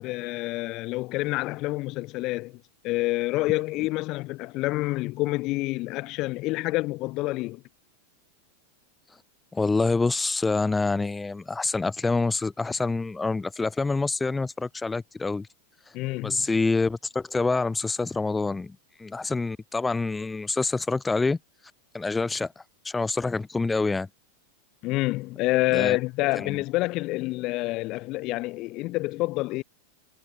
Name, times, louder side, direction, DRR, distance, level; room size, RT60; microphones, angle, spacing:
voice 1, 0.0-7.6 15.9-16.5 24.8-29.6, left 20 dB, 40° left, 6.9 m, -28 dB
voice 2, 9.5-15.5 15.9-16.0 16.2-21.4 21.9-24.1 25.7-26.0 26.4-26.6, left 3 dB, 10° left, 4.4 m, -26 dB
figure-of-eight pair, 90°, 0 cm